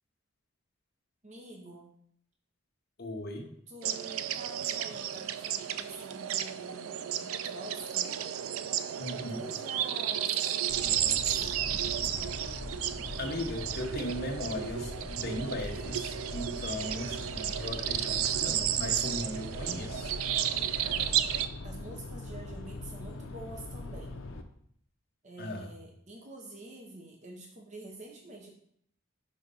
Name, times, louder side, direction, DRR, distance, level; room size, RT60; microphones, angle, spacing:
voice 1, 1.2-1.9 3.7-8.2 9.3-11.6 20.7-21.3 21.6-24.1 25.2-28.5, right 1 dB, 35° right, 0 dB, 0.8 m, -47 dB
voice 2, 3.0-3.5 9.0-9.4 13.2-20.1 25.4-25.7, left 1 dB, 50° left, 0 dB, 1.1 m, -37 dB
sound 1, 3.8-21.5, right 10 dB, 85° right, 0.4 m, -33 dB
sound 2, 10.7-24.4, left 2 dB, 70° left, 0.6 m, -41 dB
4.8 x 4.1 x 5.4 m, 0.67 s
head